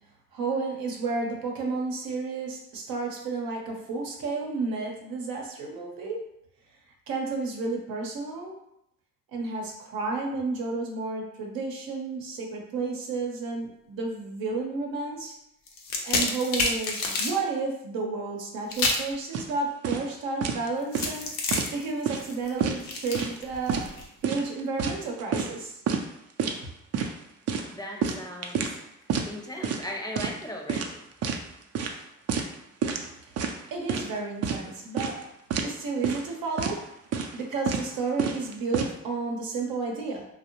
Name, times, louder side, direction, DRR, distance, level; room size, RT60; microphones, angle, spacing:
voice 1, 0.3-6.2 7.1-8.5 9.3-15.4 16.0-21.3 21.7-23.8 24.2-25.8 33.7-35.2 35.6-36.8 37.3-40.2, right 3 dB, 80° right, 0 dB, 0.7 m, -31 dB
sound 1, 15.7-17.4 18.7-19.1 20.9-24.0, left 3 dB, 90° left, 0.6 m, -29 dB
sound 2, 19.3-19.5 19.8-20.1 20.4-20.7 20.9-21.7 22.1-22.3 22.6-23.4 23.7-23.9 24.2-25.6 25.9-26.0 26.4-26.6 26.9-27.1 27.5-28.8 29.1-29.3 29.6-29.9 30.2-30.4 30.7-31.4 31.7-32.0 32.3-32.5 32.8-33.1 33.4-34.1 34.4-34.6 35.0-35.2 35.5-35.7 36.0-36.3 36.6-36.8 37.1-37.4 37.7-37.9 38.2-38.9, right 6 dB, 45° right, 0.4 m, -29 dB
voice 2, 27.7-28.8 29.3-31.0, left 1 dB, 10° left, 0 dB, 0.5 m, -37 dB
2.6 x 2.0 x 2.9 m, 0.79 s
supercardioid pair, 65°, 34 cm